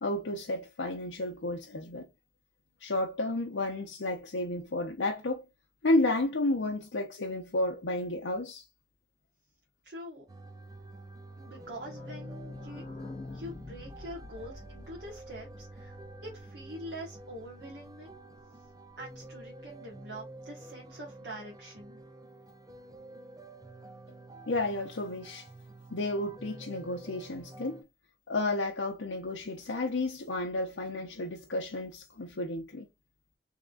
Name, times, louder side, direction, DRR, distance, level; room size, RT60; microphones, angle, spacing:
voice 1, 0.0-2.1 2.8-5.4 5.8-8.6 24.5-25.5 25.9-27.8 28.3-32.9, left 2 dB, 85° left, 0.7 m, -32 dB
voice 2, 9.8-10.2 11.4-12.8 13.3-16.0 16.2-18.2 19.0-22.0, equal, 65° right, 1.3 m, -44 dB
sound 1, 10.3-27.8, right 2 dB, 20° right, 0.5 m, -49 dB
sound 2, 11.3-16.9 17.2-17.3 17.4-17.5 17.8-17.9, left 2 dB, 30° left, 0.7 m, -45 dB
3.7 x 3.6 x 2.4 m
head